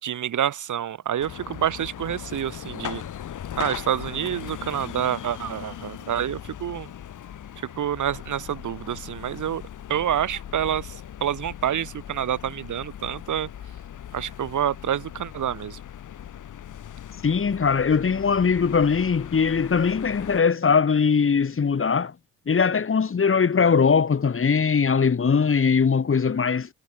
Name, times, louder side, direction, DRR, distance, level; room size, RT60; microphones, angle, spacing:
voice 1, 0.0-3.1 3.6-6.9 7.7-9.6 9.9-13.5 14.1-15.8, right 10 dB, 55° right, 5.0 m, -27 dB
sound 1, 1.2-20.4, left 10 dB, 55° left, 7.9 m, -39 dB
voice 2, 17.2-22.1 22.5-26.7, left 6 dB, 35° left, 4.6 m, -21 dB
hypercardioid pair, 55°, 37 cm